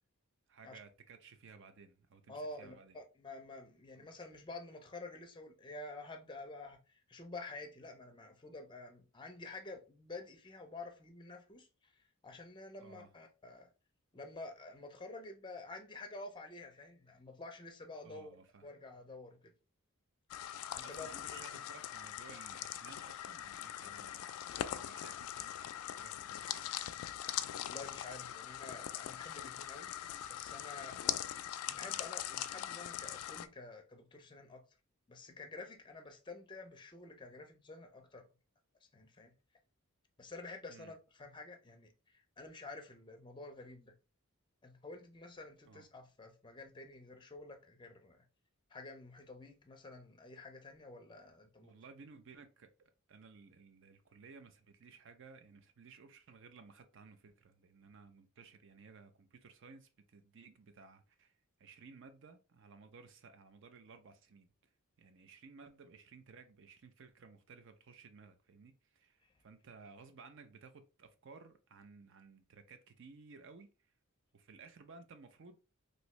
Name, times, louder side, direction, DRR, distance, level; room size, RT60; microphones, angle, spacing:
voice 1, 0.5-3.0 4.0-4.1 12.8-13.1 18.0-18.6 20.8-24.4 24.7-26.7 40.7-40.9 45.7-45.8 51.6-52.7 53.1-61.3 61.6-64.5 65.0-73.7 74.3-75.6, right 4 dB, 55° right, 0.5 m, -57 dB
voice 2, 2.3-13.7 14.1-18.4 18.6-19.5 20.7-21.4 27.7-29.9 30.3-31.3 31.7-34.7 35.1-38.2 38.9-39.4 40.2-43.9 44.6-48.2 48.7-51.7 69.2-69.3, left 2 dB, 20° left, 0.5 m, -50 dB
sound 1, 20.3-33.5, left 11 dB, 75° left, 0.3 m, -42 dB
3.1 x 2.6 x 3.0 m
head